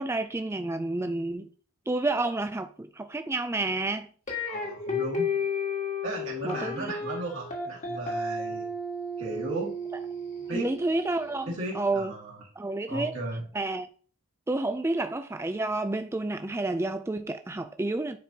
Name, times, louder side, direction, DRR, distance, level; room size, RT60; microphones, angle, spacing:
voice 1, 0.0-1.5 1.9-4.1 6.4-6.9 10.5-12.1 12.6-13.1 13.5-13.9 14.5-18.2, right 2 dB, 10° right, 0.3 m, -30 dB
sound 1, 4.3-11.4, left 3 dB, 35° left, 1.6 m, -33 dB
voice 2, 4.5-5.4 6.0-8.7 9.2-9.8 10.5-10.7 11.5-12.4 12.9-13.4, right 2 dB, 60° right, 2.1 m, -35 dB
9.2 x 4.4 x 2.8 m
head